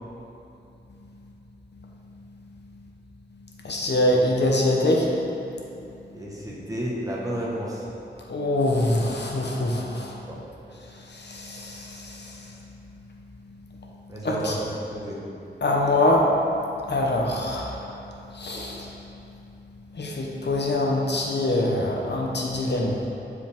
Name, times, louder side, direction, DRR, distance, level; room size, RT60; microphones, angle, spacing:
voice 1, 3.6-5.2 8.3-10.2 10.9-12.5 14.2-14.6 15.6-16.3 16.8-18.0 18.3-18.9 19.9-23.1, left 1 dB, 60° left, -1 dB, 0.9 m, -24 dB
voice 2, 6.1-7.9 10.3-10.4 14.1-15.2, right 1 dB, 20° right, -5 dB, 1.4 m, -31 dB
9.5 x 4.8 x 3.6 m, 2.8 s
wide cardioid pair, 80°, 20 cm